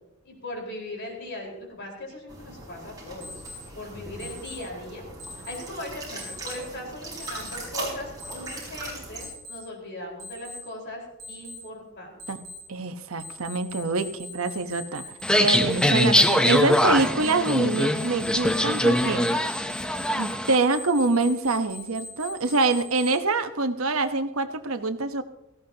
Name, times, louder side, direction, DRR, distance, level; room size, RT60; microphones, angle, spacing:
voice 1, 0.2-3.4 3.8-5.0 5.3-11.0 11.3-12.1, left 1 dB, 55° left, -1 dB, 4.6 m, -38 dB
sound 1, 2.3-9.3, right 2 dB, 20° right, 5.1 m, -39 dB
Alarm, 3.2-3.6 4.2-4.6 5.2-5.6 6.2-6.6 7.2-7.6 8.2-8.6 9.2-9.6 10.2-10.6 11.2-11.6 12.2-12.6 13.2-23.1, left 2 dB, 40° right, 4.7 m, -41 dB
voice 2, 12.7-15.1 15.4-19.3 20.2-25.2, right 3 dB, 75° right, 9 dB, 1.0 m, -25 dB
sound 2, 15.2-20.6, equal, 5° left, 0.7 m, -22 dB
18.0 x 15.5 x 2.9 m, 0.93 s
head